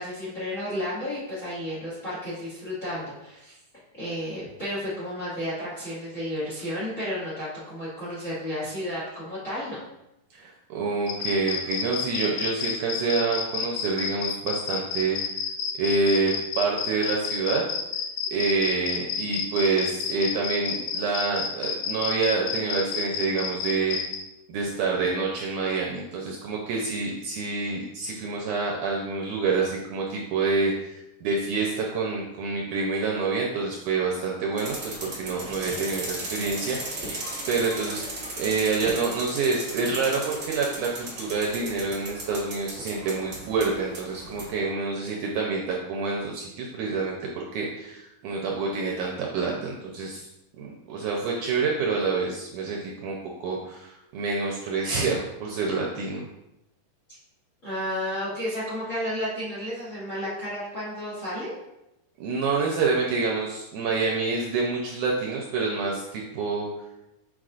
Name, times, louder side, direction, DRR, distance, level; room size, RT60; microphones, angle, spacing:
voice 1, 0.0-3.6 4.0-9.8 57.6-61.6, equal, 30° left, -8 dB, 1.7 m, -32 dB
voice 2, 10.3-15.2 15.8-17.6 18.3-24.0 24.5-38.0 38.4-50.3 50.6-56.2 62.2-66.7, right 4 dB, 75° right, -1 dB, 1.9 m, -27 dB
sound 1, 11.1-24.2, left 7 dB, 80° left, 1.7 m, -30 dB
sound 2, 34.6-44.6, right 1 dB, 50° right, 0.7 m, -36 dB
6.4 x 5.9 x 2.5 m, 0.90 s
omnidirectional pair, 4.1 m